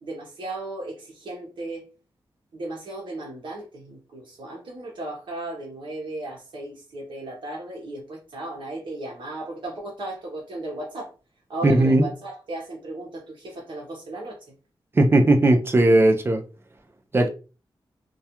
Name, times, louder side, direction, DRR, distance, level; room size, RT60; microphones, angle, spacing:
voice 1, 0.0-1.8 2.5-11.1 11.5-14.4 17.1-17.3, right 2 dB, 65° right, 0.7 m, -35 dB
voice 2, 11.6-12.1 14.9-16.4 17.1-17.3, right 2 dB, 25° right, 0.4 m, -17 dB
2.3 x 2.2 x 2.8 m
wide cardioid pair, 110°, 9 cm